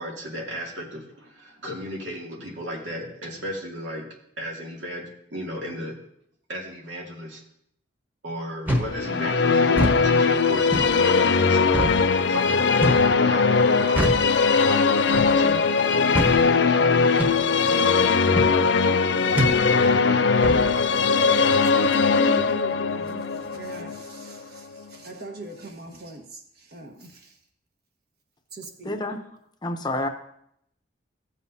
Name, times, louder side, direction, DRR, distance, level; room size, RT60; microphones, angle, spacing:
voice 1, 0.0-4.0 4.4-5.1 5.3-5.9 6.5-7.4 8.2-14.2 14.6-15.6, equal, 85° right, 2.3 m, -35 dB
sound 1, 8.7-9.0 9.7-10.0 10.7-10.9 11.7-12.0 12.8-13.1 14.0-14.3 15.1-15.4 16.1-16.4 17.2-17.4 18.4-18.5 19.4-19.6 20.4-20.7, equal, 10° right, 1.1 m, -24 dB
sound 2, 8.9-24.9, left 4 dB, 65° left, 0.5 m, -20 dB
voice 2, 21.6-27.4 28.5-29.2, right 2 dB, 55° right, 1.3 m, -40 dB
voice 3, 28.9-29.2 29.6-30.1, left 2 dB, 25° left, 0.7 m, -28 dB
16.0 x 7.3 x 2.7 m
head